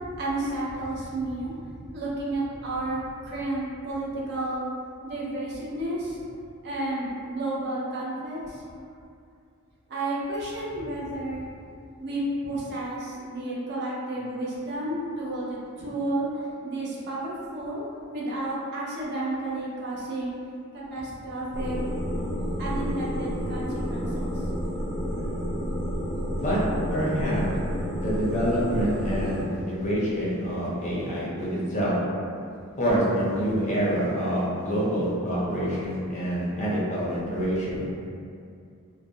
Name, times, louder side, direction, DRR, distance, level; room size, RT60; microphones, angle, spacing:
voice 1, 0.2-1.6 1.9-4.7 5.0-6.2 6.6-8.6 9.9-11.5 12.0-17.9 18.1-20.4 20.7-21.8 22.6-24.4 25.6-25.7, right 1 dB, 50° right, -6 dB, 0.5 m, -31 dB
sound 1, 21.5-29.4, equal, 20° right, 0.8 m, -30 dB
voice 2, 26.9-27.5 28.0-32.0 32.8-37.9, equal, 30° left, -7 dB, 0.5 m, -26 dB
2.3 x 2.0 x 2.6 m, 2.4 s
head